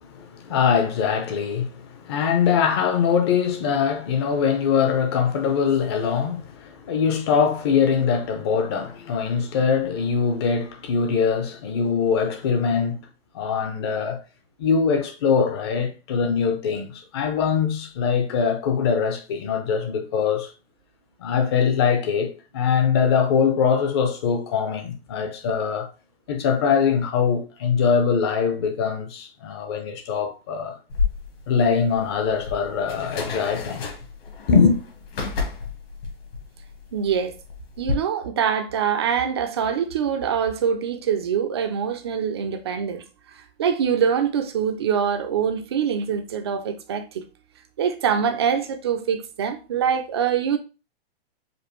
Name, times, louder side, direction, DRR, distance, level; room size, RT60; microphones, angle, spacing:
voice 1, 0.0-13.0 13.3-14.2 14.6-20.5 21.2-25.9 26.3-30.8 31.5-33.9 34.5-34.8, left 6 dB, 25° left, 0.5 m, -22 dB
sound 1, 30.9-37.9, left 4 dB, 65° left, 1.7 m, -31 dB
voice 2, 36.9-37.3 37.8-43.0 43.3-47.3 47.8-50.6, right 7 dB, 25° right, 0.3 m, -24 dB
5.0 x 2.5 x 3.0 m
hypercardioid pair, 165°, 31 cm